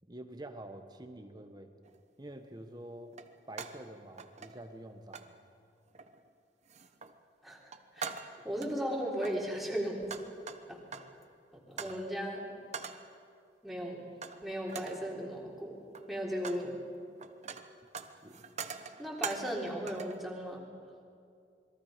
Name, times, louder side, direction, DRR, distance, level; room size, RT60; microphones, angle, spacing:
voice 1, 0.1-1.7 2.2-3.1 3.5-5.3 11.8-11.9 18.2-18.5, right 1 dB, 25° right, 6 dB, 1.4 m, -47 dB
sound 1, 1.8-2.0 3.1-3.9 4.2-4.8 5.1-5.3 5.9-6.3 6.7-7.2 7.5-8.7 9.1-11.2 11.8-12.0 12.7-13.1 14.2-14.4 14.7-15.1 15.8-16.7 16.9-19.6 19.9-20.2, right 6 dB, 40° right, 1.0 m, -43 dB
voice 2, 8.4-10.0 10.7-11.0 11.7-12.6 13.6-14.0 14.4-15.8 16.1-16.7 19.0-20.7, equal, ahead, -3 dB, 3.7 m, -36 dB
27.0 x 22.0 x 5.2 m, 2.4 s
head